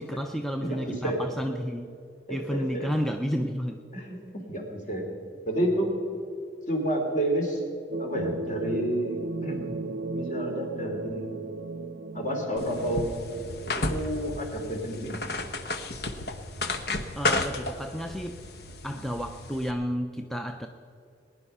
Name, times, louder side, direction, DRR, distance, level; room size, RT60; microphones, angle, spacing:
voice 1, 0.0-1.9 2.3-3.8 17.2-18.4 18.8-20.7, equal, ahead, 4 dB, 0.5 m, -31 dB
voice 2, 0.6-1.2 2.3-2.9 3.9-5.0 5.4-6.0 6.7-7.6 8.0-9.6 10.1-11.3 12.1-13.1 13.7-15.2, right 1 dB, 40° left, 1 dB, 2.9 m, -30 dB
sound 1, 7.9-14.1, right 3 dB, 75° right, 0.6 m, -35 dB
sound 2, 12.6-19.7, left 2 dB, 60° left, 1.0 m, -33 dB
20.0 x 10.0 x 5.5 m, 2.6 s
head